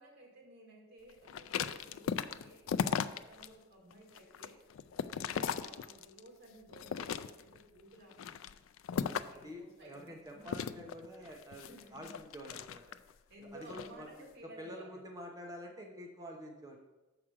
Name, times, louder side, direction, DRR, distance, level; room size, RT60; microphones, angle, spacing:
voice 1, 0.0-8.3 8.8-10.8 11.2-12.2 13.3-15.1, right 1 dB, 50° right, -1 dB, 2.2 m, -56 dB
sound 1, 1.3-3.5 3.9-6.3 6.7-7.6 8.1-9.5 10.4-13.1 13.6-13.9, left 7 dB, 70° left, 0.3 m, -37 dB
voice 2, 8.9-13.0 13.4-14.1 14.4-16.8, equal, 15° right, 1 dB, 0.8 m, -48 dB
7.3 x 4.9 x 6.2 m, 1.1 s
head